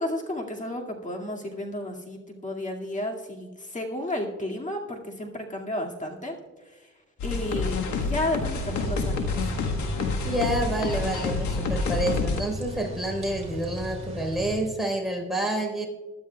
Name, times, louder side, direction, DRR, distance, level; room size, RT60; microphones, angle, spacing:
voice 1, 0.0-6.4 7.2-9.5, left 1 dB, 25° left, 0 dB, 2.2 m, -32 dB
sound 1, 7.2-12.4, left 3 dB, 75° left, 1.6 m, -28 dB
sound 2, 8.6-14.6, right 1 dB, 20° right, 3.3 m, -37 dB
voice 2, 10.2-15.8, right 1 dB, ahead, 2 dB, 4.2 m, -28 dB
22.5 x 12.0 x 2.4 m, 1.2 s
cardioid pair, 90°, 30 cm